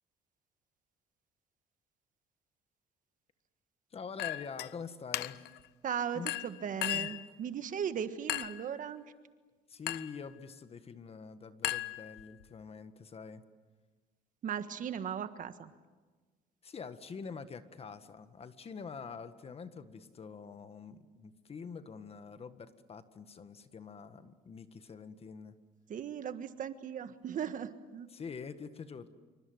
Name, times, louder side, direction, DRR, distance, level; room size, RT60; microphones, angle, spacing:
voice 1, 3.9-5.4 6.1-6.3 6.9-7.1 9.7-13.4 16.6-25.6 28.1-29.1, left 5 dB, 35° left, 10 dB, 1.7 m, -45 dB
Chink clink, 4.2-4.7 5.1-5.6 6.3-7.2 8.3-8.7 9.9-10.2 11.6-12.4, left 15 dB, 80° left, 0.8 m, -36 dB
voice 2, 5.8-9.0 14.4-15.7 25.9-28.1, right 8 dB, 50° right, 10 dB, 1.6 m, -37 dB
26.5 x 25.0 x 8.0 m, 1.3 s
cardioid pair, 110°, 17 cm